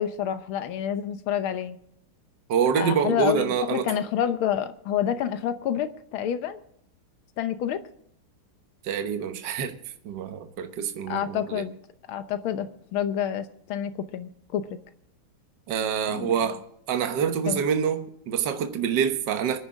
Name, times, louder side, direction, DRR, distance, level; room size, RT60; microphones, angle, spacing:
voice 1, 0.0-1.8 2.7-6.6 7.4-7.8 11.1-11.7 12.1-14.6 16.1-16.3 17.5-17.6, left 9 dB, 75° left, 1.7 m, -28 dB
voice 2, 2.5-3.9 8.8-9.8 10.0-11.7 15.7-16.6 16.9-19.6, right 7 dB, 60° right, 1.6 m, -26 dB
25.0 x 9.9 x 3.7 m
omnidirectional pair, 2.4 m